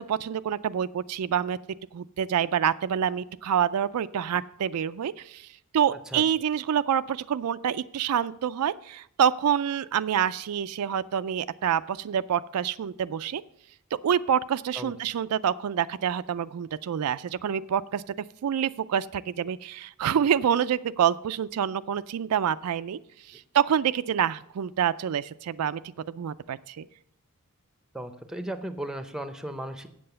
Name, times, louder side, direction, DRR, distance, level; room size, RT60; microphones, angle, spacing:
voice 1, 0.0-1.6 1.9-5.5 5.7-13.4 14.0-18.0 18.4-23.0 23.3-25.8 26.1-26.9, right 8 dB, 85° right, 14 dB, 0.4 m, -27 dB
voice 2, 5.9-6.2 14.8-14.9 27.9-29.9, right 1 dB, 5° right, 9 dB, 0.6 m, -36 dB
7.7 x 7.6 x 6.7 m, 0.72 s
head